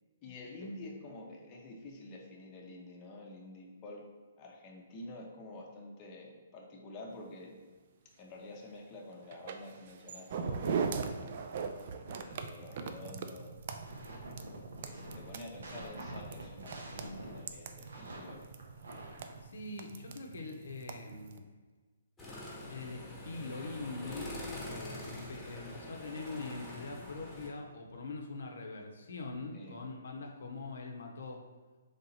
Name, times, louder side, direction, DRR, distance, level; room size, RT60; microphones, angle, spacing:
voice 1, 0.2-4.1 4.4-7.6 8.2-11.5 12.1-13.5 14.8-18.4 29.5-29.8, left 2 dB, 25° left, -1 dB, 0.6 m, -48 dB
sound 1, 9.3-21.4, right 5 dB, 50° right, 0.3 m, -41 dB
sound 2, 13.5-19.4, right 1 dB, 75° right, 0.8 m, -47 dB
voice 2, 19.4-21.5 22.7-31.5, left 3 dB, 70° left, 2 dB, 0.6 m, -43 dB
sound 3, 22.2-27.5, left 2 dB, 10° left, 1.0 m, -44 dB
3.3 x 2.8 x 4.0 m, 1.4 s
hypercardioid pair, 145°, 0 cm